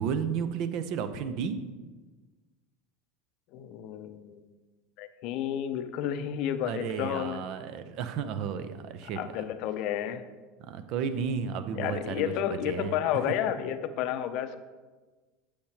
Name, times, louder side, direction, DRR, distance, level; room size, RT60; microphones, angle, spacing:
voice 1, 0.0-1.6 6.6-9.2 10.7-12.3 12.6-13.0, right 7 dB, 55° right, 10 dB, 0.6 m, -32 dB
voice 2, 3.5-4.4 5.0-7.4 9.0-10.2 11.7-14.6, left 10 dB, 55° left, 10 dB, 0.5 m, -31 dB
8.3 x 6.6 x 3.0 m, 1.3 s
hypercardioid pair, 80°, 0 cm